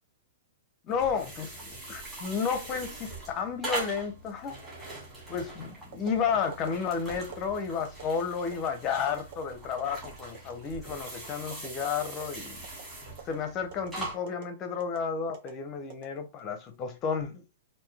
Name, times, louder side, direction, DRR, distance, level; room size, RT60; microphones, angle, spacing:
voice 1, 0.9-4.6 5.3-12.6 13.3-17.4, left 6 dB, 25° left, 0.6 m, -32 dB
sound 1, 0.9-14.2, right 2 dB, 10° right, 1.7 m, -42 dB
sound 2, 5.9-6.1 6.5-6.7 7.2-7.4 7.8-8.0 8.5-8.7 9.2-9.4 9.8-10.0 10.3-10.6 10.9-11.1 11.5-11.7 12.0-12.3 12.6-12.8 13.2-13.4 13.7-13.9 14.3-14.4 14.8-15.0 15.3-15.5 15.9-16.5 17.0-17.3, right 6 dB, 50° right, 1.0 m, -44 dB
3.7 x 2.6 x 3.3 m
hypercardioid pair, 155°, 0 cm